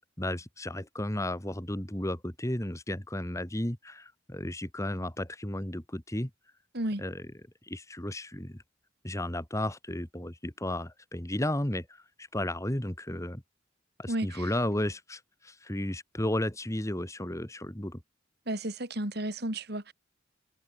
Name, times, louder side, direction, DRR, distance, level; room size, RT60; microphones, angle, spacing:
voice 1, 0.2-6.3 7.0-7.2 7.6-8.6 9.0-13.4 14.0-18.0, left 1 dB, 15° left, 2.2 m, -33 dB
voice 2, 14.1-14.5 18.5-19.9, right 1 dB, 55° right, 4.7 m, -33 dB
head